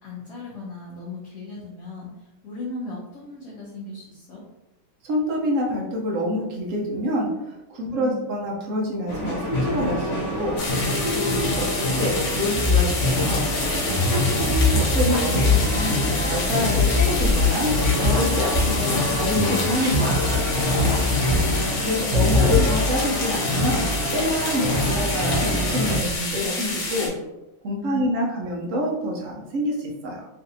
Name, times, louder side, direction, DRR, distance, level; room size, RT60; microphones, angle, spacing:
voice 1, 0.0-2.1 2.4-4.4 7.9-8.2 11.1-11.8 18.5-18.9 21.3-22.2 27.8-28.4, left 2 dB, 65° left, -6 dB, 0.9 m, -37 dB
voice 2, 5.0-10.6 11.0-11.7 12.0-13.8 14.1-20.9 21.8-27.1 27.6-30.3, equal, 80° right, -2 dB, 0.7 m, -27 dB
sound 1, 9.1-26.0, left 1 dB, 45° left, 1.1 m, -26 dB
sound 2, 10.6-27.1, left 3 dB, 90° left, 1.8 m, -29 dB
sound 3, 12.5-19.1 19.3-21.8 22.1-23.2, left 3 dB, 50° right, 0.8 m, -23 dB
3.9 x 2.5 x 2.7 m, 0.95 s
omnidirectional pair, 2.2 m